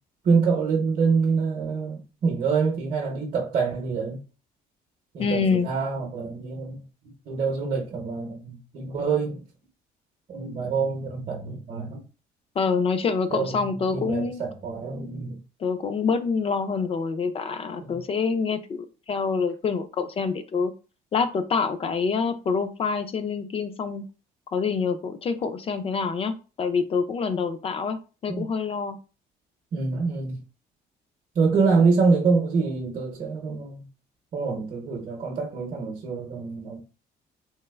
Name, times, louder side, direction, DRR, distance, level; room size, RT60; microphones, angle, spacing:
voice 1, 0.2-4.2 5.1-6.8 7.3-9.4 10.3-12.0 13.3-13.7 13.9-15.4 17.9-18.0 28.3-28.4 29.7-30.4 31.3-33.9 34.3-36.8, right 4 dB, 45° right, 0.8 m, -25 dB
voice 2, 5.2-5.7 12.6-14.4 15.6-20.7 21.1-24.0 24.5-29.0, left 5 dB, 35° left, 0.4 m, -26 dB
3.3 x 2.8 x 2.2 m
cardioid pair, 110°, 17 cm